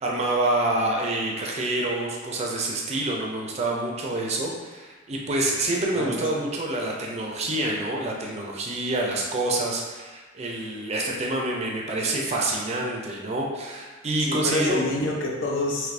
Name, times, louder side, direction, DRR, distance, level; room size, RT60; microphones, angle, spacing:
voice 1, 0.0-14.8, right 2 dB, 35° right, -1 dB, 0.5 m, -27 dB
voice 2, 5.9-6.4 14.2-15.9, left 2 dB, 70° left, -1 dB, 0.6 m, -27 dB
3.3 x 2.9 x 2.5 m, 1.3 s
head